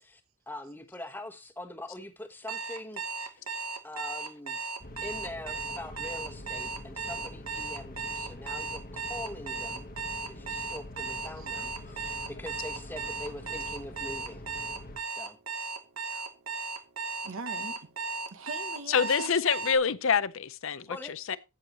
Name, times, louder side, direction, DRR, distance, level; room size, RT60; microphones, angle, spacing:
voice 1, 0.5-3.5 3.8-4.6 5.0-9.9 10.2-14.5 15.1-15.4 20.9-21.4, left 1 dB, 10° left, 1.0 m, -43 dB
Alarm, 2.5-19.8, right 4 dB, 85° right, 1.3 m, -36 dB
sound 1, 4.8-15.0, left 1 dB, 40° left, 1.1 m, -45 dB
voice 2, 17.2-17.9 18.3-19.4, right 3 dB, 70° right, 0.8 m, -42 dB
voice 3, 18.9-20.9 21.3-21.4, left 6 dB, 65° left, 0.6 m, -26 dB
13.0 x 8.0 x 3.0 m
head